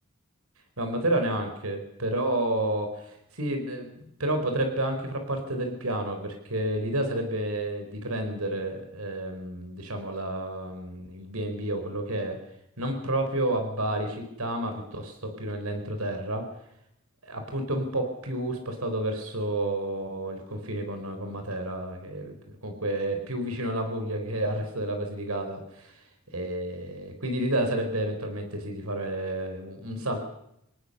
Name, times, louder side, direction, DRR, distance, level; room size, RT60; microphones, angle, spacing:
voice 1, 0.8-12.4 12.8-16.5 17.2-22.3 22.6-26.0 26.3-30.2, right 1 dB, 85° right, 5 dB, 4.7 m, -30 dB
27.5 x 19.0 x 6.9 m, 0.77 s
head